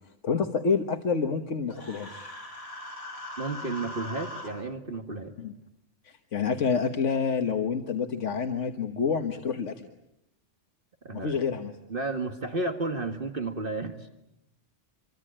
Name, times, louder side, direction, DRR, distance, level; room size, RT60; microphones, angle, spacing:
voice 1, 0.2-2.3 5.4-5.5 6.0-9.9 11.1-11.7, left 5 dB, 90° left, 5 dB, 1.6 m, -28 dB
Human voice, 1.7-4.5, left 1 dB, 55° left, 6.2 m, -40 dB
voice 2, 3.4-5.3 11.0-11.4 11.9-14.1, right 3 dB, 50° right, 5 dB, 1.9 m, -32 dB
27.0 x 24.5 x 8.8 m, 0.85 s
omnidirectional pair, 1.2 m